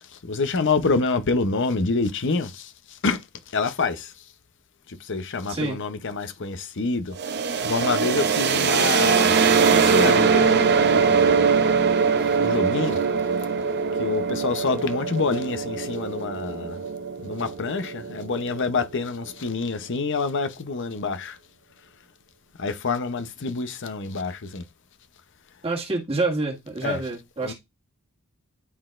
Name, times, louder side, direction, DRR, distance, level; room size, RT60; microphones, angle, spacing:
voice 1, 0.2-3.2 3.5-4.1 4.9-7.1 7.6-11.5 12.3-13.0 14.0-16.8 17.2-21.4 22.6-24.6 26.8-27.0 27.4-27.5, left 4 dB, 60° left, 0.8 m, -27 dB
voice 2, 5.5-5.8 25.6-27.5, right 2 dB, 30° right, 1.9 m, -27 dB
sound 1, 7.2-18.8, right 5 dB, 50° right, 0.7 m, -22 dB
11.0 x 3.9 x 2.5 m
head